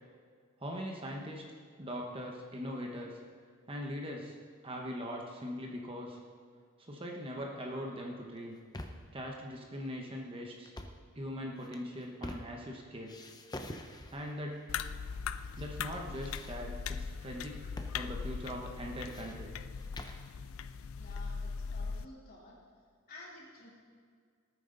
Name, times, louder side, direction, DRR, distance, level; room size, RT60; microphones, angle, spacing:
voice 1, 0.6-1.4 1.8-3.2 3.7-4.4 4.6-6.2 6.8-8.6 9.1-10.7 11.2-13.2 14.1-14.7 15.6-19.5, equal, 25° right, 0 dB, 1.1 m, -41 dB
sound 1, 8.4-9.2 10.6-11.1 11.6-12.8 13.1-14.4 15.1-15.7 15.9-17.0 17.8-18.0 18.2-18.3 18.8-20.3, left 1 dB, 20° left, 0.7 m, -46 dB
sound 2, 14.7-22.1, left 6 dB, 65° left, 0.4 m, -40 dB
voice 2, 20.9-22.6 23.1-23.7, left 2 dB, 45° left, -6 dB, 3.7 m, -52 dB
19.0 x 9.2 x 3.9 m, 2.1 s
head